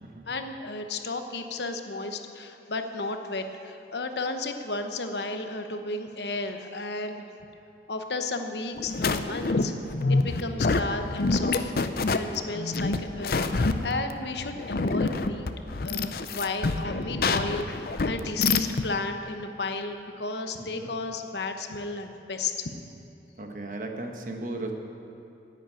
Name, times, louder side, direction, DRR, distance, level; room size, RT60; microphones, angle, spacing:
voice 1, 0.3-7.2 7.9-9.7 10.1-11.7 12.1-15.5 15.8-22.7, left 3 dB, 75° left, 6 dB, 0.9 m, -33 dB
sound 1, 8.8-18.9, left 3 dB, 55° left, 0.5 m, -27 dB
voice 2, 20.6-20.9 23.4-24.7, right 2 dB, 45° right, 3 dB, 1.2 m, -36 dB
10.5 x 9.2 x 9.1 m, 2.8 s
head